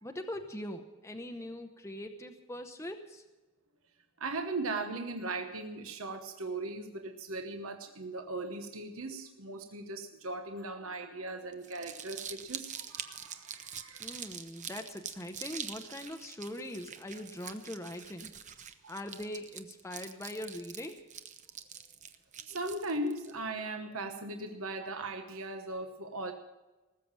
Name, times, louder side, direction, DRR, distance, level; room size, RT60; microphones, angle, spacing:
voice 1, 0.0-3.2 14.0-18.3 18.9-21.0, left 1 dB, 10° left, 4 dB, 0.8 m, -42 dB
voice 2, 4.2-14.2 18.8-18.9 22.5-26.3, right 2 dB, 70° right, 5 dB, 1.1 m, -38 dB
Crumpling crinkling, 11.5-23.3, right 8 dB, 35° right, 0.8 m, -45 dB
19.0 x 7.6 x 8.6 m, 1.1 s
head